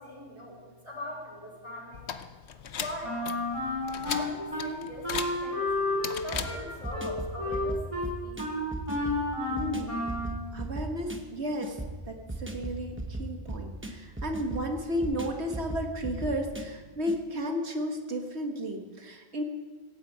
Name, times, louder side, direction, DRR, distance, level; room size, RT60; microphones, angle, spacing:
voice 1, 0.0-2.1 2.7-3.2 4.0-5.7 6.2-7.8 8.2-8.4, left 1 dB, 30° left, -4 dB, 3.8 m, -41 dB
sound 1, 1.9-7.0, left 7 dB, 80° left, 1.1 m, -38 dB
Wind instrument woodwind instrument, 3.0-4.7 5.0-10.4, left 2 dB, 30° right, 3.5 m, -31 dB
sound 2, 6.3-17.2, right 1 dB, 10° right, 1.2 m, -38 dB
voice 2, 9.5-10.1 10.5-11.8 12.1-19.4, equal, 80° right, 3 dB, 1.9 m, -33 dB
16.5 x 9.0 x 8.6 m, 1.4 s
omnidirectional pair, 1.1 m